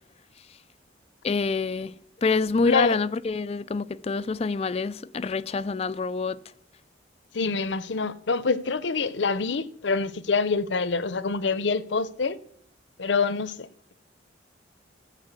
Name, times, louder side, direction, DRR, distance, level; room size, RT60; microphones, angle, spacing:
voice 1, 1.2-6.4, left 4 dB, 35° left, 0.3 m, -27 dB
voice 2, 2.7-3.0 7.3-12.4 13.0-13.9, left 4 dB, 75° left, 0.7 m, -26 dB
14.0 x 4.8 x 8.2 m
head